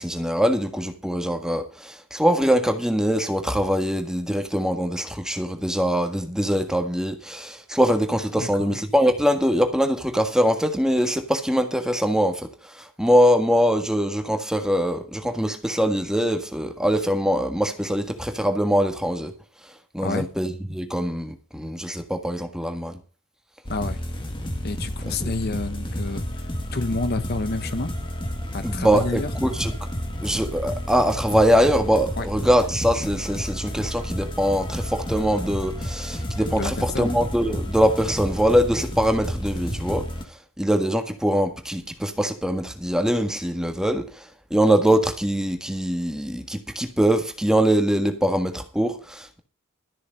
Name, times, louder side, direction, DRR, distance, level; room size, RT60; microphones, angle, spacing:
voice 1, 0.0-19.3 19.9-23.0 25.1-25.3 28.6-29.9 30.2-49.4, equal, 5° right, 1.6 m, -23 dB
voice 2, 8.4-8.8 20.0-20.3 23.7-24.0 24.6-27.9 28.5-29.3 32.2-32.3 36.6-37.2, left 3 dB, 50° left, 1.0 m, -29 dB
sound 1, 23.6-40.2, equal, 25° left, 2.1 m, -31 dB
13.5 x 6.6 x 6.6 m
head